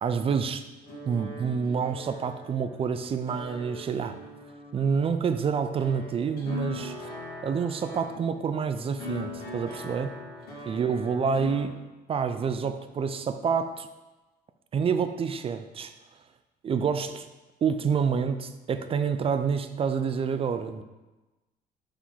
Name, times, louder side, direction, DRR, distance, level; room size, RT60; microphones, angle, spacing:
voice 1, 0.0-0.6 1.1-4.2 4.7-7.1 7.4-10.1 10.7-11.8 12.1-13.9 14.7-15.9 16.6-17.3 17.6-20.8, right 6 dB, 35° right, 10 dB, 0.4 m, -28 dB
sound 1, 0.8-11.6, left 2 dB, 60° left, 2.0 m, -41 dB
4.9 x 3.5 x 5.5 m, 1.1 s
cardioid pair, 110°, 17 cm